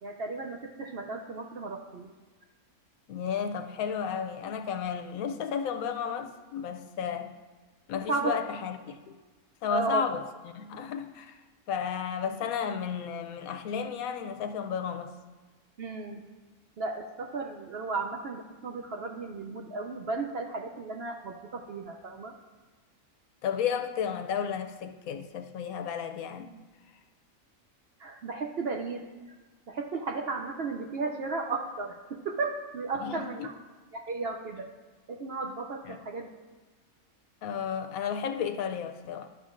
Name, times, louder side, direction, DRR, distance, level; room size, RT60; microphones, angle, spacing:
voice 1, 0.0-2.1 8.1-8.3 9.7-10.0 15.8-16.2 16.8-22.3 28.0-29.0 29.7-33.5 33.9-34.7 35.1-36.3, right 3 dB, 60° right, 0.7 m, -34 dB
voice 2, 3.1-7.3 7.9-9.1 9.6-10.2 10.5-11.4 11.7-15.1 23.4-26.6 32.9-33.5 35.9-36.0 37.4-39.3, left 7 dB, 80° left, 1.1 m, -33 dB
11.5 x 6.9 x 2.5 m
omnidirectional pair, 1.5 m